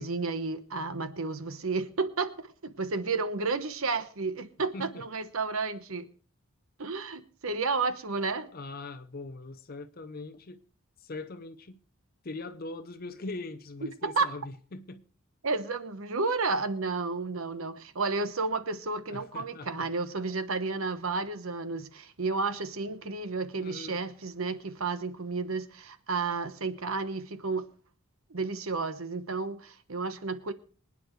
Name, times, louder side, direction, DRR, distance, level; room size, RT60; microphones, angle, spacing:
voice 1, 0.0-6.1 6.8-8.5 13.8-14.3 15.4-27.7 28.3-30.5, right 4 dB, 70° right, 1.1 m, -32 dB
voice 2, 4.7-5.1 8.5-10.6 11.0-11.8 12.2-15.0 19.1-19.9 23.6-24.0, left 2 dB, 45° left, 0.7 m, -41 dB
24.5 x 9.6 x 3.2 m
head